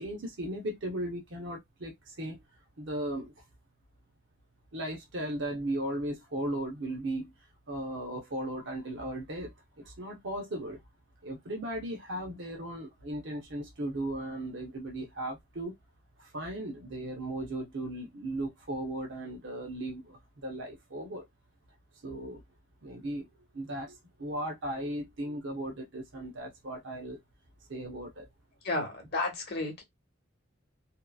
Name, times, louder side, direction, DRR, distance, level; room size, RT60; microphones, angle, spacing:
voice 1, 0.0-2.4 2.8-3.4 4.7-7.3 7.7-10.8 11.2-15.7 16.2-21.2 22.0-22.4 22.8-23.3 23.5-27.2 27.7-28.3, right 1 dB, 60° right, 0.8 m, -37 dB
voice 2, 28.6-29.8, left 2 dB, 50° left, 1.0 m, -32 dB
2.8 x 2.3 x 2.3 m
head